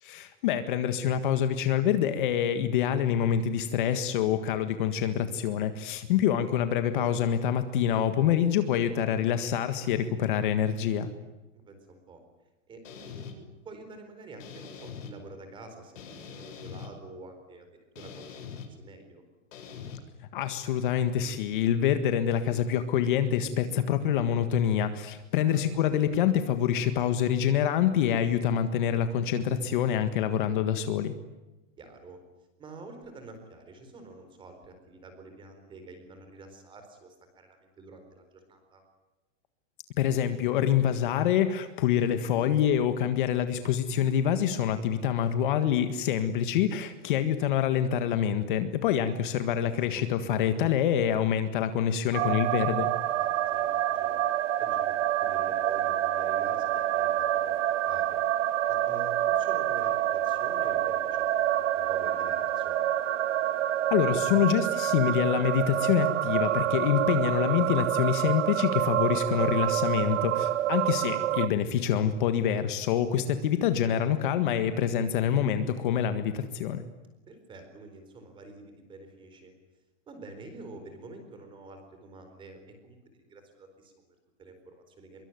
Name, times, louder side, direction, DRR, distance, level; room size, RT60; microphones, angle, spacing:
voice 1, 0.0-11.1 20.3-31.1 40.0-52.9 63.9-76.8, left 9 dB, 40° left, 9 dB, 1.7 m, -26 dB
voice 2, 8.5-8.9 11.5-12.2 12.7-17.7 18.0-18.3 18.8-19.2 25.4-25.7 31.8-32.2 32.6-38.8 42.0-42.5 49.3-50.1 53.2-54.2 54.6-57.6 57.9-58.2 58.7-62.8 70.3-70.8 73.2-73.5 77.3-79.5 80.1-83.0 83.2-85.3, right 3 dB, 15° right, 7 dB, 4.2 m, -48 dB
sound 1, 12.8-13.3 14.4-15.1 16.0-16.9 18.0-18.7 19.5-20.0, left 7 dB, 80° left, 7.4 m, -42 dB
sound 2, 52.1-71.5, right 12 dB, 75° right, 1.4 m, -27 dB
25.0 x 23.5 x 9.3 m, 1.1 s
supercardioid pair, 180°, 38 cm